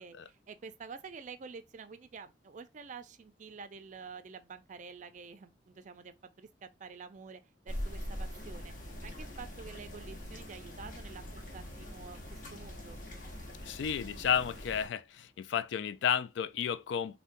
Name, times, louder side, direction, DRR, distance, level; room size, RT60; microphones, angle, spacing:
voice 1, 0.0-8.7 9.0-13.0, right 5 dB, 45° right, 0.4 m, -49 dB
sound 1, 7.7-14.9, equal, 50° left, 0.9 m, -43 dB
voice 2, 13.6-17.2, left 8 dB, 85° left, 0.3 m, -32 dB
3.7 x 2.1 x 2.5 m
head